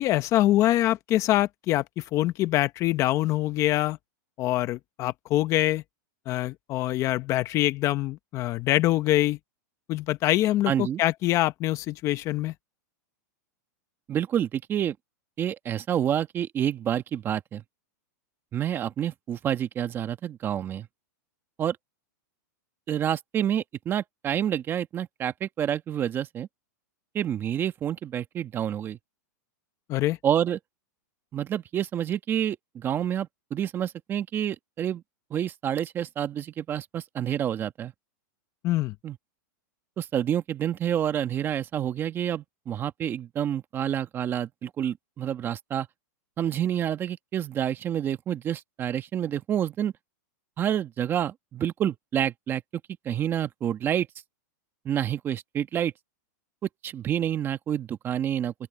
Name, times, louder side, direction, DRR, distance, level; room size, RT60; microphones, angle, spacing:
voice 1, 0.0-4.0 4.4-5.8 6.3-9.4 9.9-12.5 29.9-30.2 38.6-38.9, left 15 dB, 30° left, 0.9 m, -24 dB
voice 2, 10.7-11.0 14.1-14.9 15.4-17.6 18.5-20.9 21.6-21.8 22.9-26.5 27.1-29.0 30.2-30.6 31.3-35.0 35.3-37.9 39.0-39.2 40.0-45.9 46.4-49.9 50.6-54.1 54.8-55.9 56.8-58.5, right 10 dB, 20° right, 1.5 m, -28 dB
open air
supercardioid pair, 150°, 10 cm